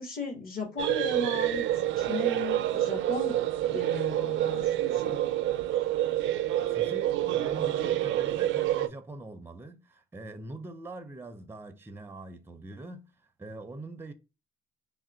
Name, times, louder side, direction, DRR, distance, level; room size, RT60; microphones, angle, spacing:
voice 1, 0.0-1.6 2.0-3.4 3.7-5.2, left 3 dB, 45° left, 1.6 m, -36 dB
sound 1, 0.8-8.9, right 13 dB, 80° right, 0.4 m, -28 dB
voice 2, 6.7-13.1 13.4-14.1, right 2 dB, 10° right, 0.5 m, -43 dB
3.6 x 2.1 x 4.2 m
cardioid pair, 90°, 20 cm